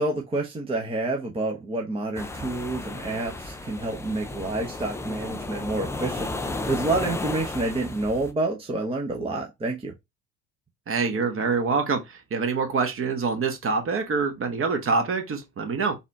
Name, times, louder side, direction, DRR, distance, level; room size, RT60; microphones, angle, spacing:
voice 1, 0.0-9.9, right 2 dB, 15° right, 0.9 m, -28 dB
sound 1, 2.1-8.3, left 2 dB, 5° left, 0.4 m, -34 dB
voice 2, 10.9-16.0, right 4 dB, 30° right, 1.2 m, -25 dB
4.1 x 2.5 x 4.1 m
figure-of-eight pair, 65°, 43 cm